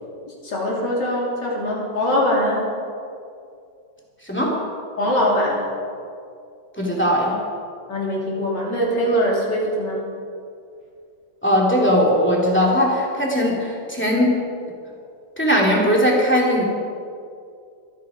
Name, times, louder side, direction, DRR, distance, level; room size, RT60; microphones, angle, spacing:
voice 1, 0.4-2.7 5.0-5.7 7.9-10.1, equal, 65° left, -4 dB, 3.9 m, -22 dB
voice 2, 4.2-4.6 6.8-7.3 11.4-14.4 15.4-16.6, equal, 5° left, -3 dB, 2.7 m, -19 dB
23.0 x 9.4 x 5.0 m, 2.4 s
omnidirectional pair, 2.1 m